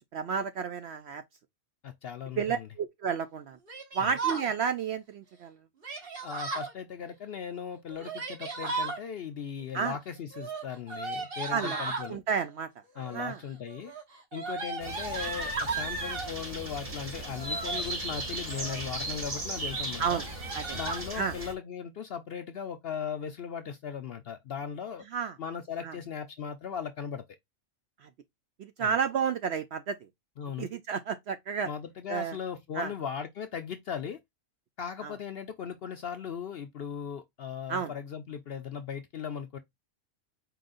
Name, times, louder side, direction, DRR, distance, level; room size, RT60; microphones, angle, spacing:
voice 1, 0.1-1.2 2.4-3.6 3.9-5.6 9.7-10.0 11.5-12.7 13.1-13.4 20.0-20.2 20.5-20.8 21.1-21.3 25.1-25.3 25.8-25.9 28.0-28.1 28.6-30.0 30.6-31.7 32.1-32.4 32.7-32.9 35.0-35.1 37.7-37.9, right 6 dB, 65° right, 0.7 m, -31 dB
voice 2, 1.8-2.7 4.0-4.1 6.2-12.2 13.0-13.9 14.3-20.2 20.7-25.1 25.4-27.2 28.8-29.0 30.4-30.7 31.6-34.2 34.8-39.6, left 7 dB, 65° left, 0.6 m, -38 dB
Yell, 3.7-4.5 5.8-6.7 7.9-9.0 10.3-12.1 13.0-13.4 13.7-16.3 17.3-17.8 18.4-18.9 19.3-19.4 19.7-19.8 20.1-21.0, right 4 dB, 45° right, 1.4 m, -35 dB
sound 1, 14.8-21.5, right 2 dB, 25° right, 1.3 m, -37 dB
4.8 x 3.8 x 2.5 m
omnidirectional pair, 1.5 m